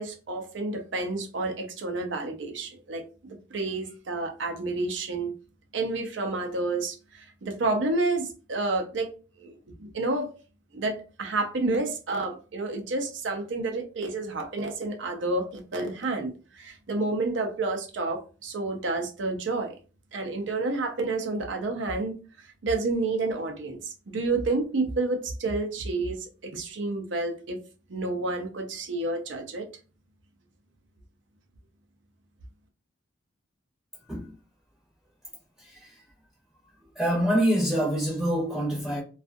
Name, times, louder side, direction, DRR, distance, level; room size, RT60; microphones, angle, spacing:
voice 1, 0.0-5.3 5.7-9.1 9.4-10.3 10.7-19.8 20.1-22.1 22.6-27.6 27.9-29.7, right 3 dB, 75° right, 0.6 m, -30 dB
voice 2, 35.6-36.0 36.8-39.0, equal, 5° right, 0.7 m, -26 dB
2.5 x 2.4 x 2.5 m
head